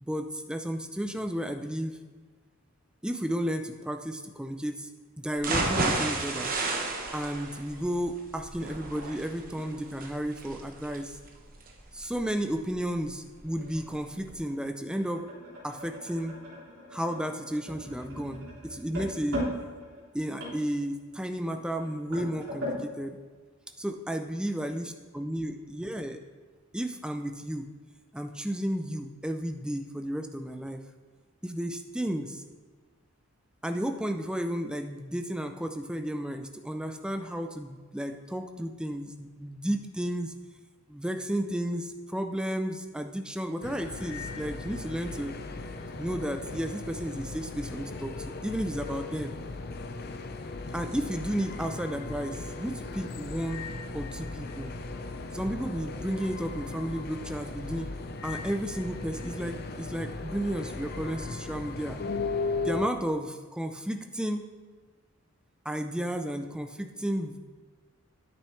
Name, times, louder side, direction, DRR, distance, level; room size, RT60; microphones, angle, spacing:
voice 1, 0.0-2.0 3.0-4.9 5.2-6.6 7.1-11.2 11.9-15.3 15.6-16.4 16.9-19.5 20.1-23.2 23.8-26.2 26.7-27.7 28.1-30.8 31.4-32.4 33.6-40.3 40.9-45.3 46.0-49.3 50.7-53.7 53.9-54.7 55.3-57.9 58.2-62.0 62.6-64.5 65.6-67.4, equal, 5° right, 6 dB, 0.4 m, -33 dB
sound 1, 5.4-13.3 13.7-13.8 14.2-14.3, right 2 dB, 40° right, 1.0 m, -33 dB
sound 2, 13.1-22.8, equal, 80° right, 3.2 m, -40 dB
sound 3, 43.6-62.9, left 3 dB, 45° left, 0.6 m, -37 dB
10.0 x 8.6 x 3.2 m, 1.4 s
head